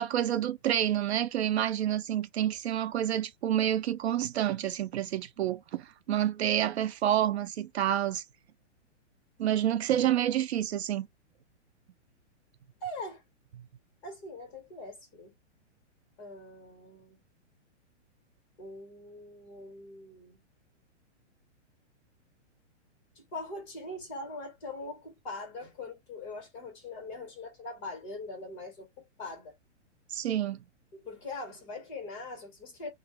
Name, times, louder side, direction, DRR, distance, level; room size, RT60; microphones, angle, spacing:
voice 1, 0.0-8.2 9.4-11.1 30.1-30.6, right 11 dB, 60° right, 0.5 m, -28 dB
voice 2, 12.8-13.2 14.0-15.3 16.2-17.2 18.6-20.4 23.2-29.6 30.9-32.9, left 2 dB, 25° left, 1.8 m, -42 dB
3.0 x 2.5 x 4.2 m
hypercardioid pair, 170°, 36 cm